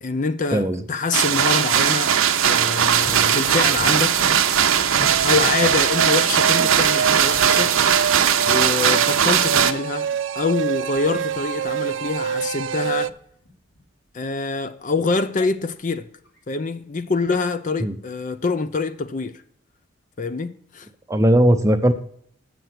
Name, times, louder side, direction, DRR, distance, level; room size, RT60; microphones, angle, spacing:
voice 1, 0.0-2.2 2.4-4.2 5.2-7.7 8.4-10.1 10.4-13.2 14.1-16.1 16.5-19.4 20.2-20.9, left 4 dB, 40° left, 0.5 m, -25 dB
sound 1, 1.1-9.7, right 8 dB, 85° right, 0.7 m, -19 dB
Thunder, 3.0-12.2 12.6-13.8 15.4-15.5 16.2-16.4, left 1 dB, 65° left, 3.0 m, -40 dB
sound 2, 5.0-13.1, right 7 dB, 65° right, 0.4 m, -26 dB
voice 2, 21.1-21.9, right 1 dB, 15° right, 0.6 m, -17 dB
7.9 x 6.7 x 5.9 m
head